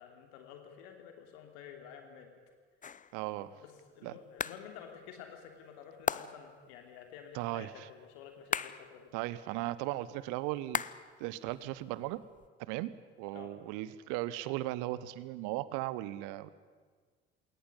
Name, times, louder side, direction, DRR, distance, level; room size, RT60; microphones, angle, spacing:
voice 1, 0.0-2.3 3.5-9.1 13.3-13.5, left 8 dB, 70° left, 5 dB, 3.3 m, -51 dB
sound 1, 2.8-3.2 4.4-4.7 6.1-6.6 8.5-9.0 10.7-11.2 11.5-12.5, left 7 dB, 25° left, 0.7 m, -37 dB
voice 2, 3.1-3.6 4.0-4.1 7.3-7.9 9.1-10.8 11.2-12.2 12.6-12.9 13.2-16.5, right 16 dB, 65° right, 17 dB, 1.0 m, -37 dB
21.0 x 18.5 x 9.9 m, 1.5 s
figure-of-eight pair, 55°, 33 cm